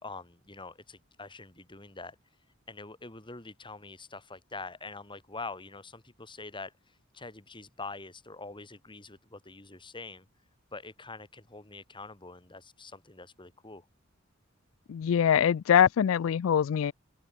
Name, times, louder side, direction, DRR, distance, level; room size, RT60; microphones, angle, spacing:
voice 1, 0.0-2.2 2.7-10.3 10.7-13.9, left 3 dB, 25° left, 3.3 m, -44 dB
voice 2, 14.9-16.9, left 8 dB, 75° left, 0.3 m, -23 dB
open air
head